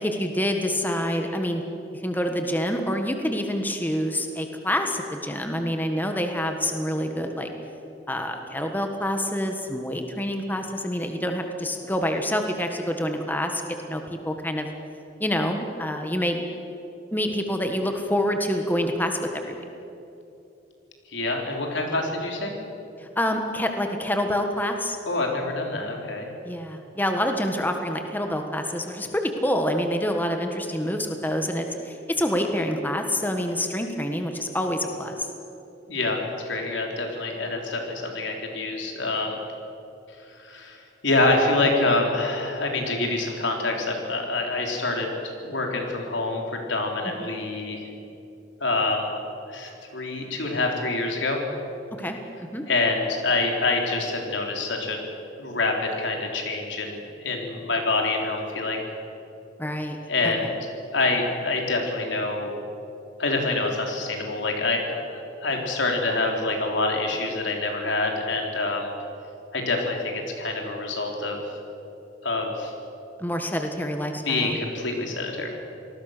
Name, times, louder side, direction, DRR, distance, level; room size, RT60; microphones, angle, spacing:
voice 1, 0.0-1.6 2.0-7.5 8.1-14.7 15.2-16.4 17.1-19.6 23.0-25.0 26.4-35.3 47.2-47.3 52.0-52.6 59.6-60.0 73.2-74.6, equal, 10° left, 4 dB, 1.5 m, -27 dB
voice 2, 21.1-22.5 25.1-26.3 35.9-39.4 40.4-45.1 45.4-47.9 48.6-49.1 49.5-51.4 52.7-55.0 55.4-58.9 60.1-60.5 60.9-62.5 63.2-68.9 69.5-71.4 72.2-72.7 74.2-75.5, left 2 dB, 80° left, 1 dB, 4.0 m, -26 dB
27.0 x 19.5 x 6.7 m, 2.8 s
head